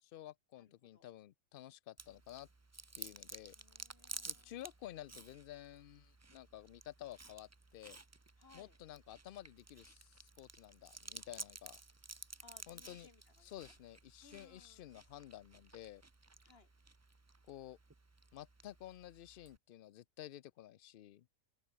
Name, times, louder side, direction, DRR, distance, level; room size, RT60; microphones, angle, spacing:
voice 1, 0.0-2.5 2.9-3.5 4.3-8.0 8.5-11.8 12.7-13.1 13.4-16.0 17.5-17.8 18.3-21.3, left 12 dB, 70° left, 0.5 m, -52 dB
voice 2, 0.6-1.1 3.5-4.6 8.4-8.8 12.4-13.7 14.2-14.9 16.4-16.7, left 4 dB, 45° left, 2.2 m, -65 dB
Chewing mastication, 2.0-19.6, right 3 dB, 20° right, 0.4 m, -54 dB
open air
omnidirectional pair, 1.5 m